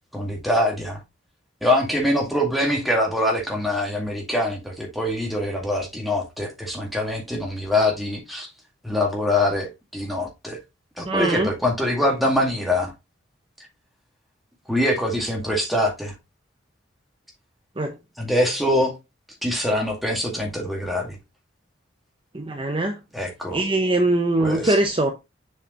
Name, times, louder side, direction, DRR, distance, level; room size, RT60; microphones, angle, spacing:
voice 1, 0.1-1.0 1.6-8.5 8.8-10.6 11.0-12.9 14.7-16.1 18.2-18.9 19.4-21.2 23.1-23.6 24.4-24.8, left 1 dB, ahead, 2.0 m, -24 dB
voice 2, 11.0-11.5 17.8-17.9 22.3-23.0 23.5-25.1, right 2 dB, 30° right, 0.7 m, -22 dB
6.8 x 4.9 x 3.0 m
head